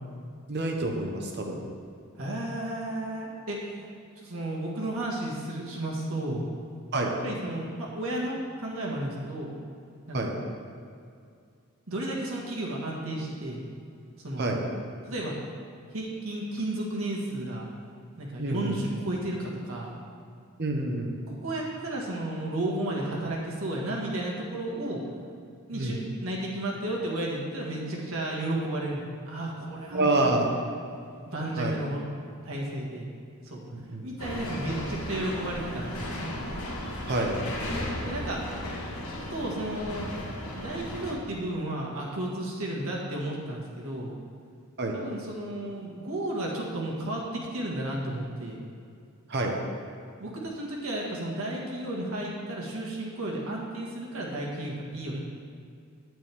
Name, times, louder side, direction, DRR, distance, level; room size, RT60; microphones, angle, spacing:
voice 1, 0.5-1.6 6.9-7.1 10.1-10.3 14.4-14.6 18.4-18.7 20.6-21.2 25.7-25.9 29.9-30.4 31.6-31.8 33.7-34.0 37.1-37.3 44.8-45.0 49.3-49.5, right 2 dB, 50° right, 1 dB, 1.1 m, -27 dB
voice 2, 2.2-3.9 4.2-6.5 7.2-9.5 10.1-10.3 11.9-13.6 14.2-14.6 15.0-15.4 15.9-17.7 18.2-20.0 21.3-25.0 25.7-30.5 31.3-32.0 32.4-33.1 33.4-33.6 34.0-36.3 38.0-38.4 39.1-40.1 40.5-44.2 44.9-48.6 50.2-55.2, right 1 dB, 70° right, -3 dB, 1.8 m, -33 dB
sound 1, 34.2-41.1, left 1 dB, 75° left, 1.5 m, -35 dB
9.1 x 9.0 x 3.6 m, 2.3 s
head